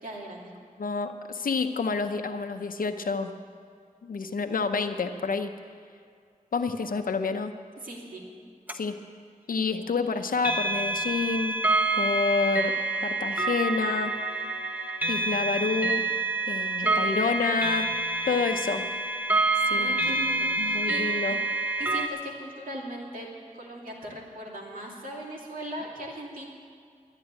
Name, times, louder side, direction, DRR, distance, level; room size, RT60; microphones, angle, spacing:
voice 1, 0.0-0.5 7.8-8.2 16.5-17.2 18.3-18.6 19.8-21.0 21.8-23.3 23.5-26.5, right 1 dB, 80° right, -2 dB, 2.8 m, -39 dB
voice 2, 0.8-3.3 4.0-5.5 6.5-7.5 8.7-9.0 9.5-11.7 12.0-12.8 13.0-14.2 15.1-16.1 16.5-18.9 19.7-19.9 20.6-21.4, left 4 dB, 90° left, 7 dB, 0.7 m, -28 dB
sound 1, 8.7-8.8 10.4-22.1, right 2 dB, 10° right, 1.1 m, -27 dB
12.5 x 9.8 x 9.1 m, 2.2 s
wide cardioid pair, 75°, 14 cm